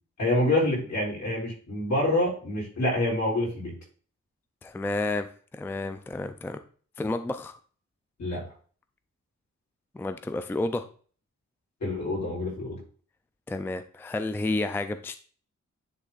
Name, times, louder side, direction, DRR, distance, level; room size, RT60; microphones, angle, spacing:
voice 1, 0.2-3.7 8.2-8.5 11.8-12.8, left 1 dB, 70° left, -3 dB, 3.8 m, -27 dB
voice 2, 4.6-5.3 5.5-6.6 7.0-7.6 9.9-10.9 13.5-15.2, left 2 dB, 10° left, 10 dB, 0.4 m, -30 dB
10.0 x 3.4 x 3.9 m, 0.43 s
wide cardioid pair, 145°, 29 cm